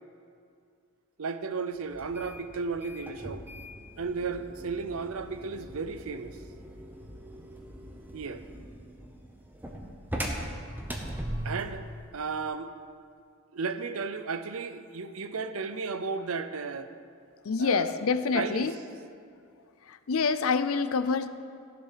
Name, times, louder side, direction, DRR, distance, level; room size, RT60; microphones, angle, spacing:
voice 1, 1.2-3.4 4.0-6.4 8.1-8.4 11.4-11.8 12.1-12.7 13.5-16.9 17.6-17.9 18.3-18.7, right 4 dB, 70° right, 10 dB, 0.6 m, -34 dB
sound 1, 1.9-11.8, equal, 10° right, 0.9 m, -40 dB
voice 2, 17.4-18.7 19.9-21.3, left 5 dB, 70° left, 12 dB, 0.5 m, -26 dB
15.0 x 7.0 x 5.7 m, 2.3 s
head